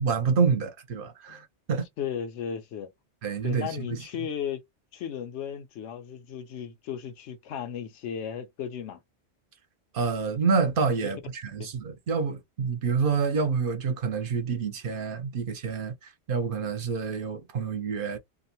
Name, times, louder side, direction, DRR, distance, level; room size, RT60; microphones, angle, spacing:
voice 1, 0.0-1.9 3.2-4.0 9.9-18.2, right 5 dB, 55° right, 0.7 m, -28 dB
voice 2, 2.0-2.9 3.4-4.6 4.9-9.0 11.6-11.7, left 8 dB, 85° left, 0.9 m, -35 dB
2.5 x 2.0 x 2.7 m
omnidirectional pair, 1.2 m